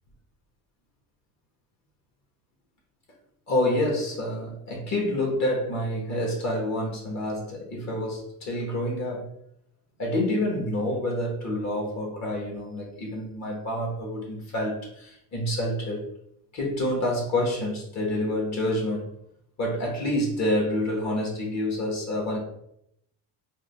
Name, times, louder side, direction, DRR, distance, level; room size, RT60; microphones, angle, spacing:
voice 1, 3.5-9.3 10.0-16.0 16.5-19.1 19.6-22.4, left 1 dB, 45° left, -1 dB, 1.2 m, -28 dB
3.6 x 2.3 x 3.3 m, 0.75 s
cardioid pair, 130°, 38 cm